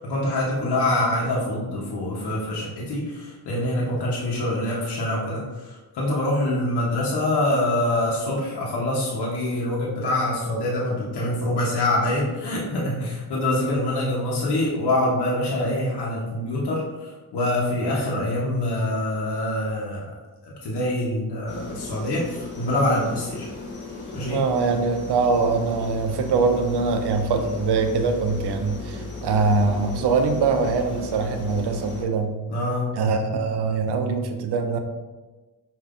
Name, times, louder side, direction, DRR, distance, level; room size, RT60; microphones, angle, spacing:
voice 1, 0.0-20.1 20.4-23.5 24.1-24.4 32.5-33.0, left 1 dB, 70° left, -4 dB, 1.0 m, -25 dB
sound 1, 21.5-32.0, left 3 dB, 25° left, 1.1 m, -36 dB
voice 2, 24.3-32.4 32.9-34.8, right 4 dB, 75° right, 7 dB, 0.6 m, -23 dB
5.2 x 2.6 x 2.4 m, 1.2 s
cardioid pair, 65°, 41 cm